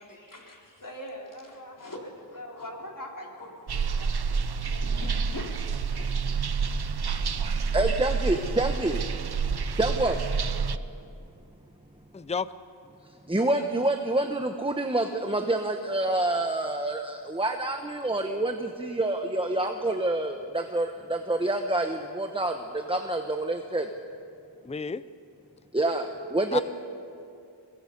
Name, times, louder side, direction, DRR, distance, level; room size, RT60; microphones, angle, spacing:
voice 1, 0.0-6.3 6.5-6.7 7.0-7.1, left 1 dB, 45° left, -1 dB, 4.1 m, -42 dB
sound 1, 3.7-10.8, right 5 dB, 55° right, 0.8 m, -28 dB
voice 2, 7.7-9.0 9.8-10.2 13.3-23.9 25.7-26.6, right 2 dB, 10° right, 5 dB, 1.1 m, -27 dB
voice 3, 12.1-12.5 24.6-25.0 26.5-26.6, left 5 dB, 15° left, 15 dB, 0.5 m, -31 dB
23.5 x 22.0 x 5.4 m, 2.5 s
wide cardioid pair, 60°, 46 cm